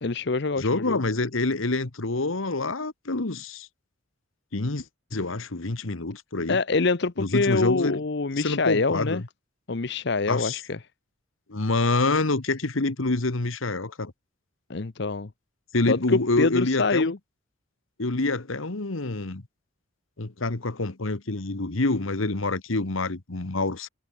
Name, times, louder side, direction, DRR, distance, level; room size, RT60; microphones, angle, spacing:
voice 1, 0.0-1.0 6.5-9.2 9.7-10.8 14.7-15.3 15.9-17.2, left 3 dB, 55° left, 0.8 m, -25 dB
voice 2, 0.6-3.7 4.5-4.8 5.1-6.6 7.2-8.0 8.3-9.3 10.3-10.6 11.5-14.1 15.7-17.1 18.0-19.4 20.2-23.9, left 2 dB, 80° left, 1.4 m, -27 dB
head